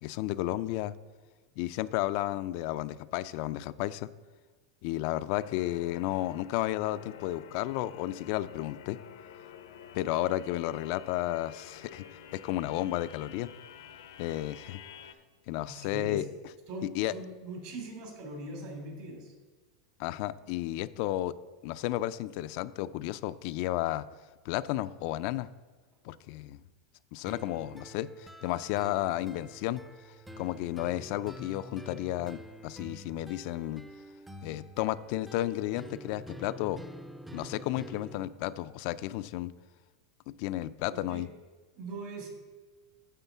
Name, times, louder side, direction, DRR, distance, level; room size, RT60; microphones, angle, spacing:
voice 1, 0.0-0.9 1.6-4.1 4.8-9.0 9.9-12.0 12.3-13.5 14.2-14.8 15.5-16.2 16.9-17.1 20.0-21.3 21.6-24.0 24.4-25.5 26.0-26.6 27.1-29.8 30.4-33.8 34.4-36.8 37.3-39.5 40.3-41.3, left 15 dB, 55° left, 14 dB, 0.3 m, -32 dB
sound 1, 5.3-15.1, left 8 dB, 85° left, 0.7 m, -50 dB
voice 2, 15.7-16.2 16.7-19.3 40.9-41.3 41.8-42.3, right 1 dB, 55° right, 2 dB, 2.7 m, -41 dB
sound 2, 27.3-38.3, equal, 5° right, 0.5 m, -47 dB
9.3 x 3.7 x 7.1 m, 1.3 s
supercardioid pair, 125°, 2 cm